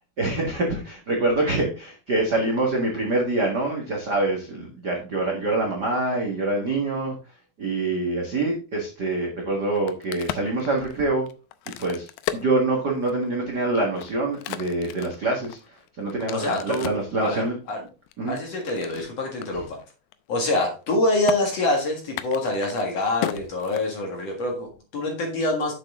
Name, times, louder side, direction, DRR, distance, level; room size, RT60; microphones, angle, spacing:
voice 1, 0.2-7.1 7.6-11.3 11.8-17.6 18.2-18.4 19.5-19.6, right 2 dB, 50° right, -1 dB, 1.2 m, -25 dB
Crack, 9.6-13.3 13.8-17.1 17.7-19.0 19.4-19.5 19.8-20.1 20.4-20.9 21.3-21.4 22.0-24.3, left 13 dB, 80° left, 2.3 m, -35 dB
voice 2, 16.3-17.8 18.3-19.8 20.3-25.7, left 2 dB, 50° left, 1 dB, 2.4 m, -26 dB
7.8 x 7.2 x 3.7 m, 0.34 s
omnidirectional pair, 4.4 m